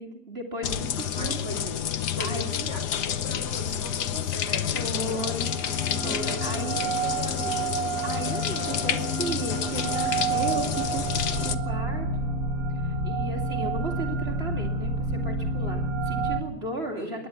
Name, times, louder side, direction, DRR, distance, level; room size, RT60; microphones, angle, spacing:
voice 1, 0.0-1.4 2.2-2.7 4.7-5.5 6.0-6.8 8.0-11.0 11.4-12.3 12.8-17.3, right 2 dB, 35° right, 2 dB, 2.6 m, -35 dB
sound 1, 0.6-11.5, left 9 dB, 75° left, 1.5 m, -29 dB
voice 2, 1.2-1.7 2.1-5.2 5.9-7.7 16.9-17.3, left 1 dB, 40° left, 2 dB, 6.1 m, -40 dB
sound 2, 5.1-16.4, right 4 dB, 60° right, 2.0 m, -30 dB
27.5 x 11.5 x 8.4 m, 0.80 s
omnidirectional pair, 1.8 m